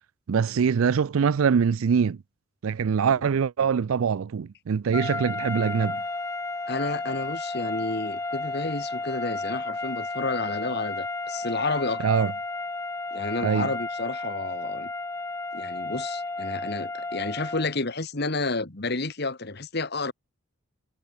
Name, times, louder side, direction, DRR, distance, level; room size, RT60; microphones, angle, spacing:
voice 1, 0.3-2.2 2.6-6.0 12.0-12.3 13.4-13.7, right 6 dB, 80° right, 0.4 m, -23 dB
sound 1, 4.9-17.8, left 3 dB, 15° left, 0.5 m, -33 dB
voice 2, 6.7-12.1 13.1-14.9 15.5-20.1, left 3 dB, 50° left, 1.9 m, -30 dB
head